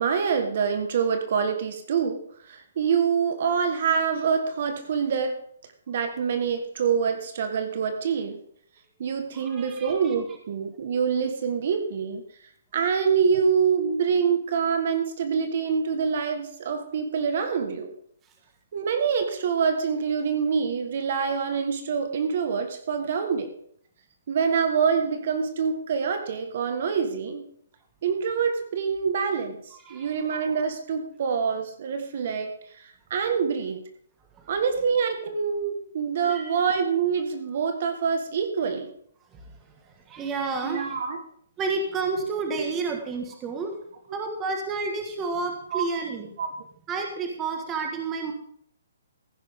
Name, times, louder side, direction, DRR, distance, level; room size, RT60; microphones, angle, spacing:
voice 1, 0.0-2.2 2.4-5.4 5.9-8.4 9.0-12.2 12.7-17.9 18.7-23.5 24.3-27.4 28.0-33.8 34.5-38.9 40.6-41.2 42.2-42.3 42.6-42.7 45.7-45.9 46.4-46.5, right 6 dB, 45° right, 7 dB, 1.5 m, -26 dB
voice 2, 9.3-10.1 29.8-30.1 34.4-34.5 36.2-36.5 39.3-39.6 40.1-41.0 41.6-43.7 44.1-46.3 46.9-48.3, right 4 dB, 15° right, 3 dB, 1.6 m, -30 dB
15.0 x 10.5 x 3.7 m, 0.64 s
hypercardioid pair, 170°, 0 cm